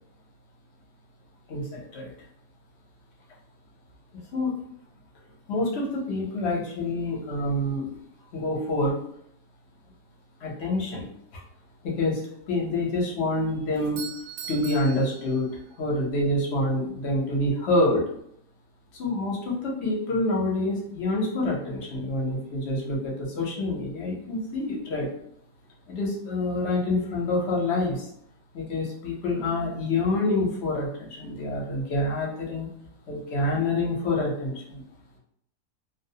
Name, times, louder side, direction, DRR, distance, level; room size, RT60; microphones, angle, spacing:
voice 1, 1.5-2.1 4.3-4.6 5.5-7.9 8.3-9.0 10.4-11.1 11.8-12.2 12.5-14.0 14.5-15.5 15.8-18.0 18.9-25.1 25.9-28.1 28.5-32.7 33.1-34.8, left 2 dB, 55° left, -3 dB, 0.8 m, -27 dB
Doorbell, 13.7-15.9, right 8 dB, 85° right, 1.1 m, -41 dB
2.5 x 2.0 x 2.7 m, 0.70 s
omnidirectional pair, 1.6 m